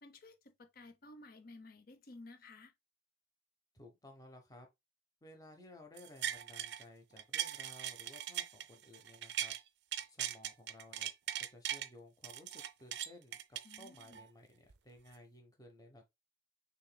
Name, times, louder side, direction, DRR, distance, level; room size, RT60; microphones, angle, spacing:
voice 1, 0.0-2.7 13.6-14.2, left 2 dB, 55° left, 0.7 m, -55 dB
voice 2, 3.7-4.7 5.2-9.5 10.1-11.1 11.4-16.0, left 1 dB, 20° left, 1.0 m, -57 dB
sound 1, 6.0-6.8 7.2-9.6 9.9-11.9 12.2-14.2 14.7-14.8, right 11 dB, 75° right, 0.4 m, -40 dB
6.4 x 3.0 x 2.2 m
head